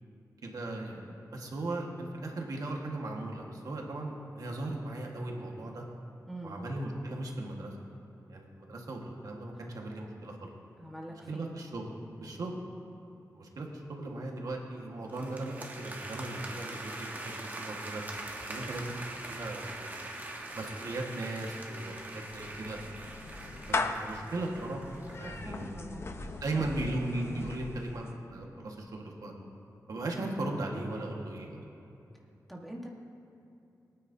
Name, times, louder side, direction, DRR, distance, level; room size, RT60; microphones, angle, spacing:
voice 1, 0.4-5.8 6.4-7.7 8.3-10.5 11.1-11.9 12.2-12.6 13.3-18.0 18.5-18.9 19.3-20.0 20.5-22.8 23.8-24.8 25.2-25.8 26.4-29.3 29.9-31.6, right 2 dB, 70° right, 0 dB, 1.5 m, -37 dB
voice 2, 6.3-6.6 10.8-11.5 25.2-26.6 32.5-32.9, right 1 dB, ahead, -2 dB, 1.3 m, -44 dB
sound 1, 15.1-25.4, right 2 dB, 25° right, 1.2 m, -43 dB
Clapping / Meow, 21.9-28.3, left 3 dB, 40° left, 0.6 m, -39 dB
22.5 x 9.4 x 2.7 m, 2.7 s
wide cardioid pair, 120°, 6 cm